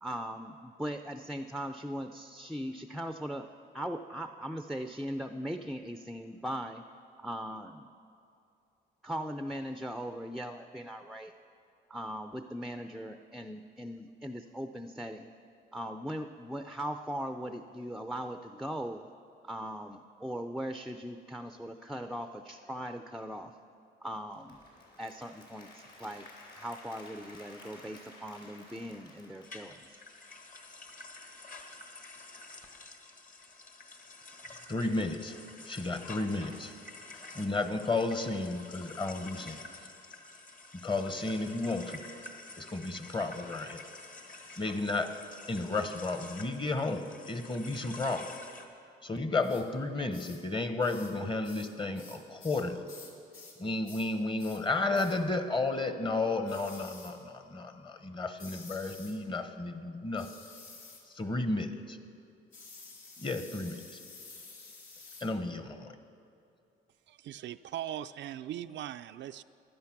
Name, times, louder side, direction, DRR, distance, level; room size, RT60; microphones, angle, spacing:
voice 1, 0.0-3.5 3.7-6.9 7.2-7.9 9.0-11.3 11.9-15.3 15.7-19.1 19.4-23.6 24.0-24.6 25.0-26.3 26.5-30.0, equal, ahead, 7 dB, 0.5 m, -39 dB
Applause / Crowd, 24.2-30.2, left 2 dB, 55° left, 4.4 m, -54 dB
sound 1, 29.4-48.7, left 2 dB, 40° left, 1.5 m, -49 dB
voice 2, 34.7-35.3 35.7-36.7 37.3-39.6 40.8-42.0 42.6-43.8 44.6-45.2 45.5-48.4 49.0-52.8 53.6-60.4 61.1-62.0 63.2-64.0 65.2-66.0, left 2 dB, 25° left, 8 dB, 1.1 m, -33 dB
sound 2, 49.4-49.7 50.1-50.4 50.8-51.2 51.4-53.6 53.8-54.1 54.4-54.6 54.9-55.2 56.5-57.2 58.4-59.2 60.2-61.1 62.5-65.3, left 4 dB, 85° left, 2.2 m, -51 dB
voice 3, 67.1-69.4, right 11 dB, 65° right, 11 dB, 0.4 m, -40 dB
15.5 x 11.5 x 5.9 m, 2.6 s
cardioid pair, 90°, 20 cm